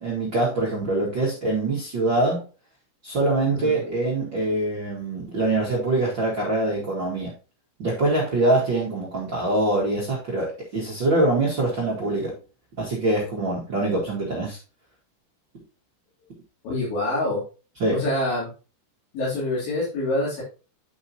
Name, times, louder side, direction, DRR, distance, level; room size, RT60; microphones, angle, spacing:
voice 1, 0.0-2.4 3.0-7.3 7.8-12.4 12.8-14.6 17.8-18.0, right 2 dB, 65° right, 1.1 m, -24 dB
voice 2, 16.6-17.4 17.9-18.5 19.1-20.4, left 1 dB, 80° left, 5.7 m, -26 dB
11.0 x 5.2 x 2.8 m
omnidirectional pair, 5.1 m